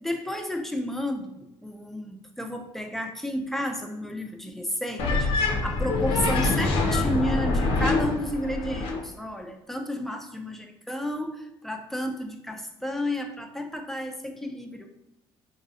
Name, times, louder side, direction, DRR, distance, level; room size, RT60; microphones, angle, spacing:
voice 1, 0.0-14.9, left 1 dB, 5° left, 4 dB, 0.4 m, -32 dB
sound 1, 5.0-9.0, left 3 dB, 65° left, 0.7 m, -25 dB
2.6 x 2.4 x 4.0 m, 0.91 s
cardioid pair, 100°, 10 cm